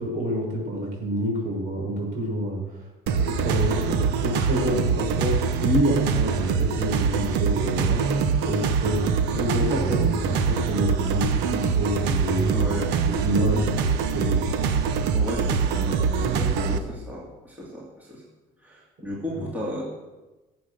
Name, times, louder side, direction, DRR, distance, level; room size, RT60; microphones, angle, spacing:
voice 1, 0.0-12.7 13.0-13.8 14.1-14.5 19.3-19.4, equal, 55° right, -1 dB, 6.5 m, -28 dB
sound 1, 3.1-16.8, right 5 dB, 85° right, 1.3 m, -24 dB
voice 2, 12.5-13.0 13.5-13.6 15.1-18.2 18.6-19.9, equal, 10° right, -5 dB, 2.7 m, -34 dB
19.0 x 7.8 x 6.7 m, 1.1 s
cardioid pair, 160°, 17 cm